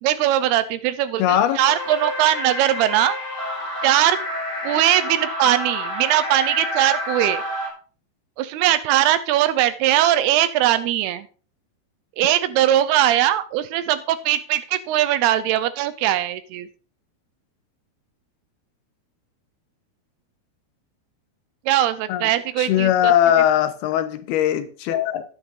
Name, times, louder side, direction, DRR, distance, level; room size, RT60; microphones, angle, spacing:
voice 1, 0.0-3.2 3.8-4.2 4.6-7.4 8.4-11.3 12.2-16.7 21.7-23.1, right 12 dB, 85° right, 13 dB, 2.8 m, -20 dB
voice 2, 1.2-1.6 22.1-22.3 22.6-25.2, left 11 dB, 85° left, 9 dB, 2.8 m, -20 dB
sound 1, 1.6-7.7, left 1 dB, 15° left, 5.2 m, -29 dB
11.0 x 9.3 x 4.0 m, 0.39 s
omnidirectional pair, 4.5 m